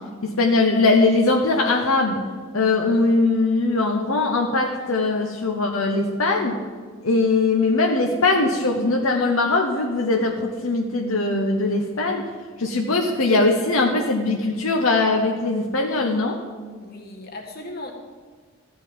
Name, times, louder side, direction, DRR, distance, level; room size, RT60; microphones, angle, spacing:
voice 1, 0.2-2.2 2.5-6.6 7.0-12.3 12.6-16.4, left 3 dB, 80° left, 1 dB, 1.0 m, -21 dB
voice 2, 16.8-17.9, left 1 dB, 45° left, 1 dB, 1.8 m, -37 dB
14.0 x 5.3 x 9.0 m, 1.5 s
head